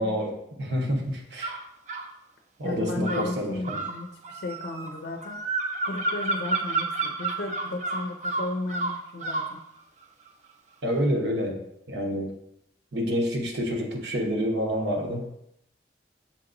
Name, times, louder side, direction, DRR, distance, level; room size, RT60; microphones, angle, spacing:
voice 1, 0.0-1.6 2.6-3.8 10.8-12.3 12.9-15.3, equal, 80° right, 1 dB, 0.9 m, -28 dB
sound 1, 1.4-2.1 3.0-9.6, right 3 dB, 40° right, 0.5 m, -30 dB
voice 2, 2.6-5.4 5.9-9.6, left 2 dB, 70° left, 2 dB, 0.5 m, -34 dB
7.1 x 2.9 x 2.5 m, 0.77 s
head